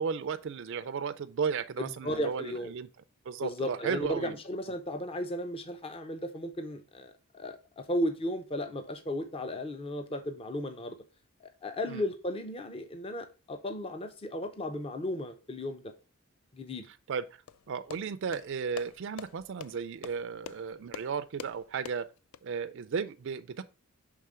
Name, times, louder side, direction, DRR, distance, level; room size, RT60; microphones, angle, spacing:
voice 1, 0.0-2.9 3.3-4.3 11.8-12.0 17.1-17.4 17.7-22.1 22.4-23.6, right 6 dB, 55° right, 0.4 m, -34 dB
voice 2, 1.8-2.7 3.4-11.0 11.6-15.8 16.5-16.8, left 1 dB, 25° left, 0.5 m, -35 dB
sound 1, 17.5-22.4, left 8 dB, 70° left, 0.3 m, -46 dB
5.5 x 3.6 x 4.8 m
head